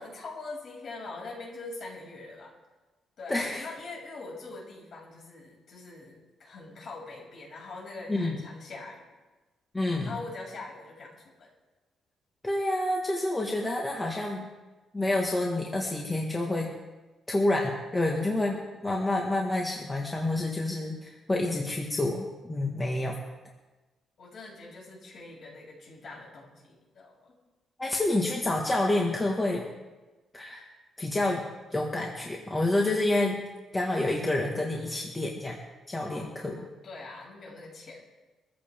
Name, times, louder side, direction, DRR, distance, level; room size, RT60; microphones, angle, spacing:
voice 1, 0.0-2.5 3.2-9.1 10.0-11.5 24.2-27.4 36.0-38.0, left 3 dB, 45° left, -3 dB, 6.5 m, -43 dB
voice 2, 3.3-3.7 8.1-8.3 9.7-10.2 12.4-14.5 14.9-16.7 17.3-23.2 27.8-29.6 30.3-30.6 31.0-31.4 31.7-33.4 33.7-35.6 35.9-36.6, left 2 dB, 15° left, -1 dB, 1.6 m, -28 dB
24.0 x 14.5 x 3.6 m, 1.2 s
cardioid pair, 145°, 0 cm